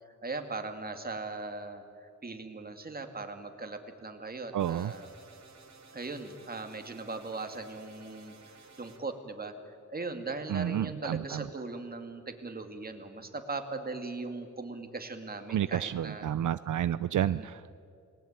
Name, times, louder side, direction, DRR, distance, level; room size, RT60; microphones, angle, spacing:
voice 1, 0.2-5.1 5.9-9.5 9.9-16.3 17.2-17.5, right 3 dB, 30° right, 6 dB, 2.4 m, -39 dB
voice 2, 4.5-4.9 10.5-11.4 15.5-17.8, right 10 dB, 80° right, 15 dB, 0.5 m, -30 dB
sound 1, 4.6-9.0, right 4 dB, 60° right, 3.3 m, -55 dB
29.5 x 20.0 x 8.9 m, 2.5 s
wide cardioid pair, 145°, 30 cm